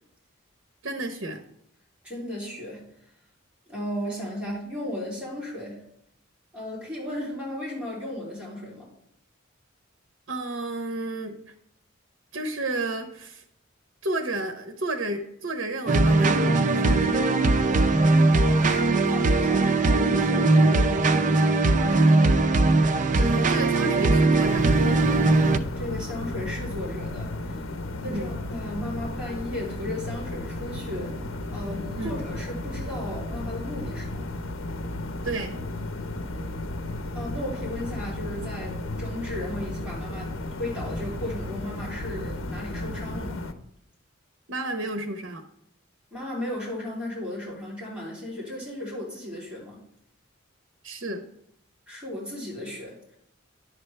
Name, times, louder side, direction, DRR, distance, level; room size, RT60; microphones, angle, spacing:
voice 1, 0.8-1.4 10.3-11.4 12.3-13.4 14.0-17.2 23.1-24.8 28.1-28.3 31.9-32.1 35.2-35.6 44.5-45.4 50.8-51.2, right 2 dB, 65° right, 6 dB, 0.9 m, -31 dB
voice 2, 2.0-2.9 3.7-5.8 6.5-8.9 18.4-22.3 25.7-27.7 28.0-31.2 31.5-34.3 37.1-43.4 46.1-49.8 51.9-53.0, left 1 dB, 5° right, -7 dB, 3.1 m, -35 dB
sound 1, 15.9-25.6, right 2 dB, 40° right, 0.4 m, -20 dB
sound 2, 24.4-43.5, left 1 dB, 80° left, 0.8 m, -34 dB
10.5 x 7.6 x 3.3 m, 0.75 s
head